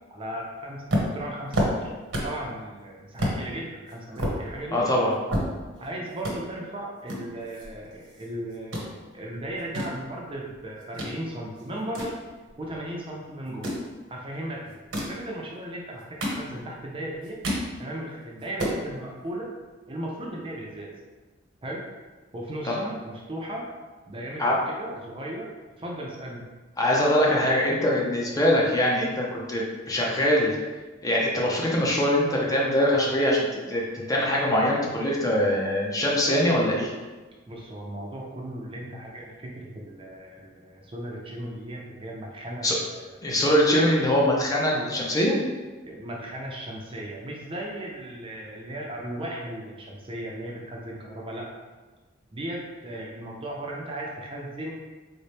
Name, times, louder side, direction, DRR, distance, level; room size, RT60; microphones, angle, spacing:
voice 1, 0.1-1.9 2.2-4.9 5.8-12.2 12.6-13.7 14.1-14.8 15.1-17.4 17.8-19.5 19.9-20.9 21.6-21.8 22.3-23.7 24.1-25.5 25.8-26.4 37.5-43.0 45.9-51.5 52.3-54.8, right 1 dB, 30° right, -2 dB, 0.5 m, -36 dB
sound 1, 0.9-2.5 2.8-2.9 3.2-3.4 3.9-5.9 6.2-6.4 7.1-8.3 8.5-8.9 9.5-11.2 11.6-12.9 13.5-13.9 14.7-15.2 15.8-16.8 17.1-17.7 18.1-18.2 18.4-18.8, equal, 85° right, 1.1 m, -29 dB
voice 2, 4.7-5.1 22.6-22.7 24.4-24.6 26.8-30.6 31.0-33.8 34.1-36.9 42.6-42.8 43.2-45.3, left 1 dB, 20° left, -3 dB, 0.5 m, -23 dB
4.0 x 2.1 x 3.3 m, 1.3 s
head